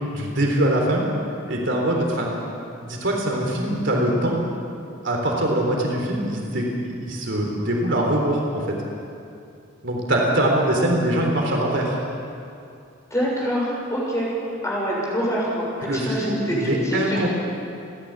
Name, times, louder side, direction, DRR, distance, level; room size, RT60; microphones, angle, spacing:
voice 1, 0.1-1.1 1.5-2.3 2.8-4.4 5.0-8.8 9.8-12.0 15.8-17.3, right 1 dB, 60° right, 0 dB, 3.8 m, -23 dB
voice 2, 13.1-14.3 14.6-17.2, equal, 15° left, -5 dB, 7.0 m, -25 dB
28.5 x 11.0 x 9.9 m, 2.6 s
head